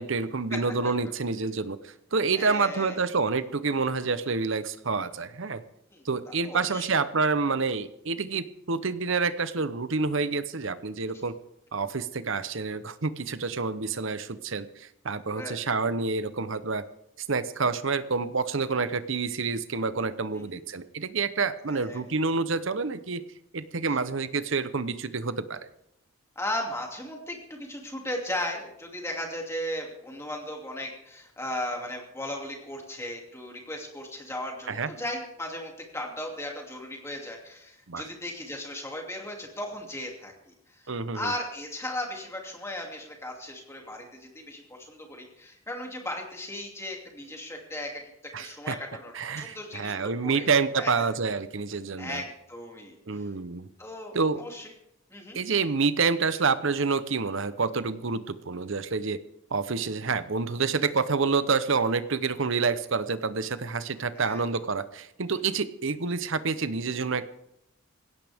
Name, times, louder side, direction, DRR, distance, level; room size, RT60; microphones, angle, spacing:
voice 1, 0.0-5.6 6.0-11.4 11.7-16.8 17.2-23.2 23.5-25.7 34.7-34.9 37.9-38.1 40.9-41.3 48.3-48.7 49.1-52.2 53.1-53.7 54.1-54.4 55.3-59.2 59.5-67.3, right 4 dB, 60° right, 13 dB, 0.8 m, -28 dB
voice 2, 2.3-3.0 5.9-6.0 6.4-6.9 15.3-15.6 20.4-20.5 21.7-22.0 26.4-48.0 48.4-50.5 50.8-51.1 52.0-53.3 53.8-54.7 55.1-55.4 64.1-64.4, left 1 dB, 10° left, 1 dB, 2.6 m, -36 dB
19.5 x 17.0 x 3.6 m, 0.79 s
head